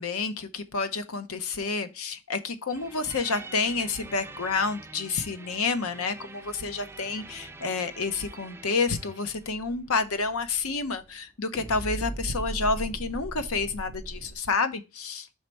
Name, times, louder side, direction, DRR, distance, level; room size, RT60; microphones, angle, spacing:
voice 1, 0.0-15.3, left 4 dB, 70° left, 0.8 m, -29 dB
sound 1, 2.7-11.3 11.5-14.4, right 2 dB, 10° right, 0.4 m, -41 dB
5.6 x 4.3 x 4.5 m
head